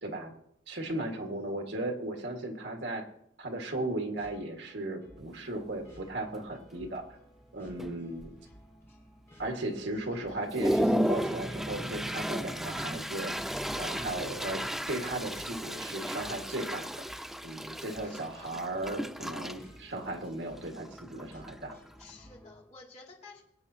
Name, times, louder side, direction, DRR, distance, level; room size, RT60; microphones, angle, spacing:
voice 1, 0.0-0.3 0.7-3.1 3.4-7.0 7.5-8.3 9.4-13.3 13.8-16.9 17.4-21.8, right 1 dB, 75° right, 2 dB, 1.8 m, -36 dB
voice 2, 1.0-1.6 10.1-10.4 18.0-18.6 22.0-23.4, left 3 dB, 40° left, -4 dB, 2.5 m, -53 dB
sound 1, 3.8-22.5, equal, 15° left, 3.4 m, -57 dB
Toilet flush, 5.2-5.3 5.8-6.1 6.3-6.9 7.4-7.5 7.8-8.6 9.0-9.1 9.6-9.7 10.2-22.1, equal, ahead, 0.3 m, -34 dB
sound 2, 10.5-16.5, equal, 20° right, 0.9 m, -44 dB
23.0 x 8.8 x 2.8 m, 0.78 s
head